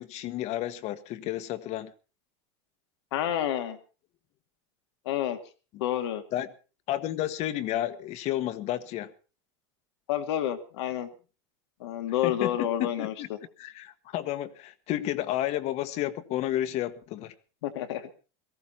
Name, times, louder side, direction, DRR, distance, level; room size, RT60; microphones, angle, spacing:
voice 1, 0.0-1.9 6.3-6.5 6.9-9.1 12.2-13.3 13.6-17.3, left 13 dB, 50° left, 12 dB, 1.5 m, -31 dB
voice 2, 3.1-3.8 5.1-5.4 5.8-6.2 10.1-11.1 11.8-13.4 17.6-18.1, left 11 dB, 80° left, 7 dB, 2.3 m, -29 dB
18.0 x 14.5 x 4.3 m, 0.36 s
supercardioid pair, 110°, 14 cm